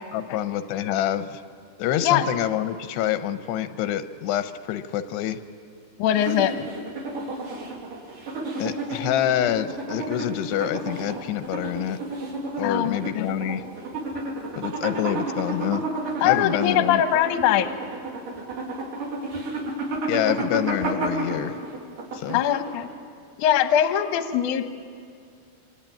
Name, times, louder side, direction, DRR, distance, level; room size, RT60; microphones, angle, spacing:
voice 1, 0.1-1.4 1.8-5.4 8.6-12.0 12.6-13.6 14.6-15.8 16.2-17.0 20.1-21.5 22.1-22.4, left 11 dB, 90° left, 10 dB, 3.0 m, -26 dB
voice 2, 6.0-6.5 12.6-13.3 16.2-17.7 22.3-22.9 23.4-24.6, left 10 dB, 65° left, 8 dB, 2.2 m, -21 dB
sound 1, 6.1-22.9, right 2 dB, 55° right, 4.9 m, -31 dB
26.0 x 25.0 x 8.9 m, 2.2 s
omnidirectional pair, 4.8 m